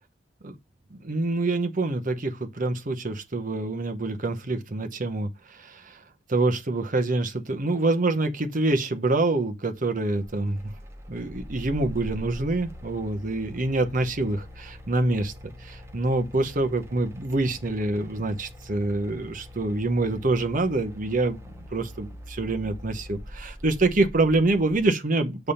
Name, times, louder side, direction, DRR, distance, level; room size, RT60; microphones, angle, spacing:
voice 1, 0.9-6.0 6.3-10.7 11.1-15.3 15.6-25.5, right 2 dB, 45° right, 0.8 m, -26 dB
sound 1, 10.1-24.8, equal, 15° right, 0.8 m, -43 dB
7.0 x 3.5 x 5.5 m
head